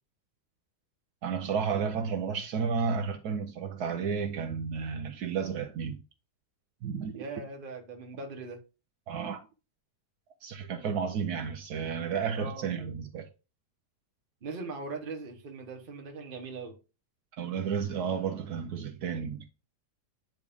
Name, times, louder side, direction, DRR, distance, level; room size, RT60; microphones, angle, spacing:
voice 1, 1.2-6.0 6.8-7.2 9.1-9.4 10.4-13.3 17.4-19.5, right 6 dB, 70° right, 1.2 m, -32 dB
voice 2, 7.1-8.6 12.3-12.9 14.4-16.8, right 3 dB, 35° right, 1.2 m, -40 dB
9.4 x 3.2 x 3.5 m
omnidirectional pair, 1.8 m